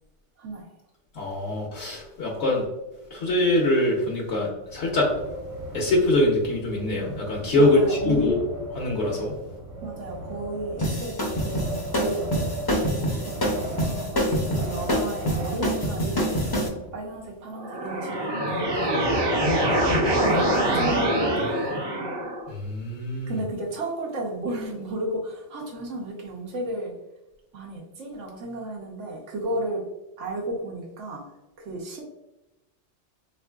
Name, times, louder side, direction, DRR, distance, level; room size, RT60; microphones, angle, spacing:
voice 1, 1.2-2.7 3.1-5.1 5.7-8.3 8.7-9.3 19.7-19.8 22.5-23.3, left 1 dB, 70° left, -1 dB, 1.0 m, -23 dB
Wind, 4.6-17.3, right 1 dB, 55° right, 1.5 m, -36 dB
voice 2, 7.5-8.3 9.8-12.3 12.6-16.3 16.7-19.2 20.1-21.8 23.3-26.9 27.5-29.8 30.2-31.2 31.6-32.0, right 1 dB, 80° right, 0 dB, 1.2 m, -33 dB
sound 1, 10.8-16.7, equal, 25° left, 0.5 m, -26 dB
sound 2, 17.5-22.5, right 1 dB, 25° right, 0.6 m, -24 dB
3.6 x 3.1 x 2.3 m, 0.98 s
omnidirectional pair, 1.2 m